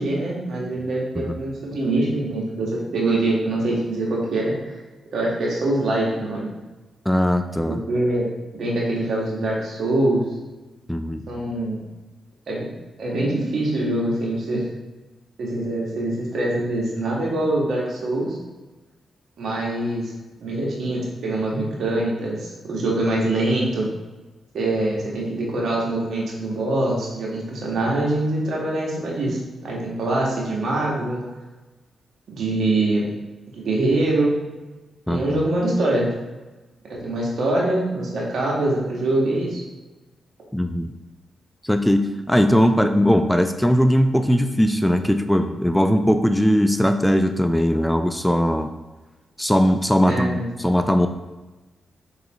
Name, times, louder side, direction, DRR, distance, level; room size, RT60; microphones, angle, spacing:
voice 1, 0.0-4.5 5.1-6.5 7.7-8.2 8.5-10.2 11.3-11.8 12.5-12.7 13.0-14.7 15.4-18.4 19.4-20.1 20.4-23.9 24.5-31.2 32.3-33.1 33.5-34.3 35.1-36.0 36.9-39.6 50.0-50.4, right 2 dB, 70° right, -4 dB, 1.3 m, -24 dB
voice 2, 7.1-7.8 10.9-11.3 35.1-35.4 40.5-40.9 41.6-48.7 49.4-51.1, equal, 5° left, 7 dB, 0.3 m, -19 dB
4.6 x 3.9 x 2.9 m, 1.2 s
cardioid pair, 60°, 0 cm